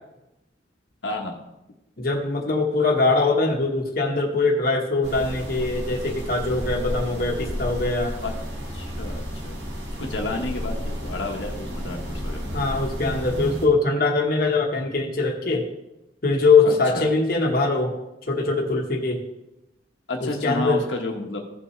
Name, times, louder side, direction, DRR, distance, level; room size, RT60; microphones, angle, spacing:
voice 1, 1.0-1.4 8.2-8.3 8.7-9.6 9.9-12.7 16.6-17.1 20.1-21.4, left 2 dB, 80° left, 1 dB, 1.2 m, -31 dB
voice 2, 2.0-8.1 12.5-15.7 16.2-17.9 18.3-19.2 20.2-20.8, left 3 dB, 50° left, 0 dB, 1.2 m, -22 dB
sound 1, 5.0-13.7, equal, 70° right, 2.0 m, -32 dB
15.5 x 5.7 x 3.2 m, 0.94 s
head